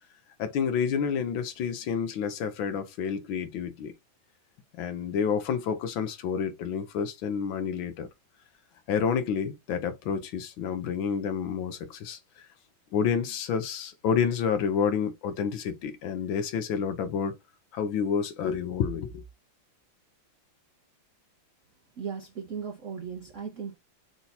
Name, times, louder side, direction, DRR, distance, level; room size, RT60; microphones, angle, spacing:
voice 1, 0.4-3.9 4.8-8.1 8.9-12.5 12.9-17.3 17.7-19.2, left 7 dB, 75° left, 1.5 m, -29 dB
voice 2, 22.0-23.8, right 6 dB, 65° right, 0.7 m, -37 dB
4.5 x 2.7 x 3.9 m
omnidirectional pair, 2.3 m